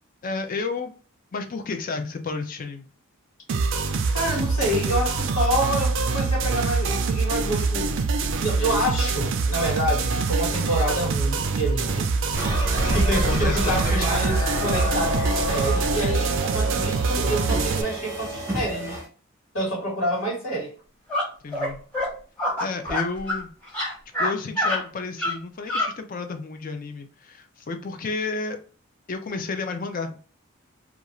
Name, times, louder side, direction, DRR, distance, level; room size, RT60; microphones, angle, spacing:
voice 1, 0.2-0.9 1.3-2.9 12.9-14.2 21.4-21.8 22.6-23.5 24.2-28.6 29.1-30.2, left 3 dB, 40° left, 0.4 m, -31 dB
sound 1, 3.5-17.8, right 4 dB, 60° right, 0.4 m, -25 dB
voice 2, 4.1-8.0 8.4-12.1 12.9-19.0 19.5-20.7, equal, 75° left, 1.5 m, -27 dB
sound 2, 12.3-19.1, right 1 dB, 10° right, 0.6 m, -28 dB
sound 3, 21.1-21.2 21.5-21.7 21.9-22.1 22.4-23.4 23.7-24.3 24.6-24.8 25.2-25.3 25.7-25.9, left 1 dB, 5° left, 1.0 m, -25 dB
2.5 x 2.3 x 2.9 m
head